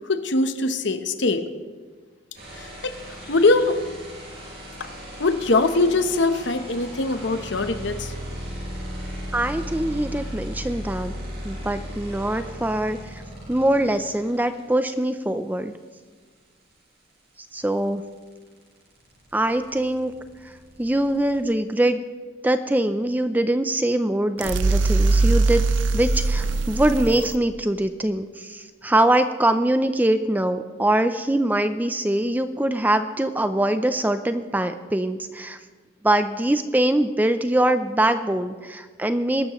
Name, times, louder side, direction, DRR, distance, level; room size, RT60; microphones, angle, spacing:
voice 1, 0.0-1.4 2.5-3.8 4.8-4.9 5.2-8.1, left 3 dB, 60° left, 9 dB, 0.9 m, -22 dB
sound 1, 2.3-14.6 16.7-16.8 17.0-21.4, equal, 50° right, 4.8 m, -37 dB
voice 2, 9.3-11.1 11.4-13.2 13.5-15.8 17.5-18.0 19.3-20.1 20.4-20.5 20.8-22.0 22.4-25.6 25.9-35.6 36.0-39.5, right 1 dB, 10° right, 10 dB, 0.4 m, -23 dB
sound 2, 24.4-27.4, right 3 dB, 65° right, 0.6 m, -21 dB
21.5 x 12.0 x 3.0 m, 1.4 s
head